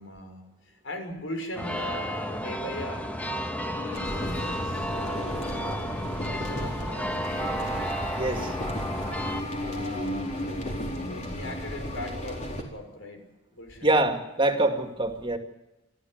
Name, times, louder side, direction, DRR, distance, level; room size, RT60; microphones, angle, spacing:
voice 1, 0.0-3.1 3.6-7.8 9.5-13.2 13.5-14.0, left 1 dB, 80° left, 4 dB, 6.3 m, -40 dB
sound 1, 1.6-9.4, equal, 10° left, 1.7 m, -32 dB
sound 2, 3.9-12.6, left 1 dB, 40° left, 4.4 m, -34 dB
voice 2, 8.2-8.5 13.8-15.4, right 2 dB, 25° right, 5 dB, 2.4 m, -24 dB
28.5 x 13.0 x 8.1 m, 1.0 s
head